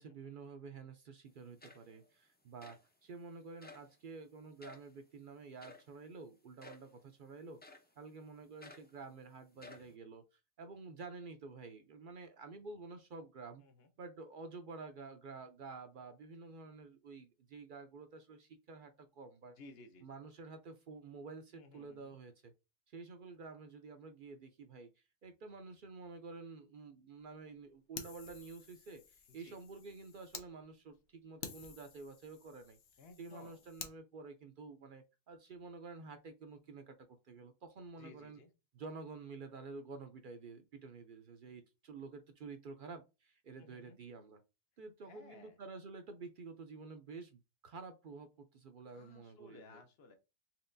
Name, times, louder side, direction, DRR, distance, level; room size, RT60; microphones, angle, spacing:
voice 1, 0.0-7.6 8.0-13.6 14.0-19.5 20.0-22.5 22.9-24.9 25.2-32.8 33.2-38.4 38.7-44.4 44.8-49.8, right 4 dB, 60° right, 7 dB, 0.6 m, -50 dB
sound 1, 1.3-1.4 1.6-2.1 2.6-2.9 3.6-3.9 4.6-4.9 5.6-5.9 6.6-6.9 7.6-7.9 8.6-8.9 9.5-9.9, left 3 dB, 15° left, 0.4 m, -55 dB
voice 2, 19.6-20.2 21.5-22.2 29.3-29.6 33.0-33.6 38.0-38.5 43.6-44.0 45.1-45.6 48.9-50.1, left 3 dB, 65° left, 7 dB, 0.9 m, -58 dB
Fire, 28.0-30.5 30.9-31.0 31.4-34.0, left 7 dB, 90° left, 1.0 m, -51 dB
4.3 x 3.0 x 2.5 m, 0.27 s
omnidirectional pair, 1.2 m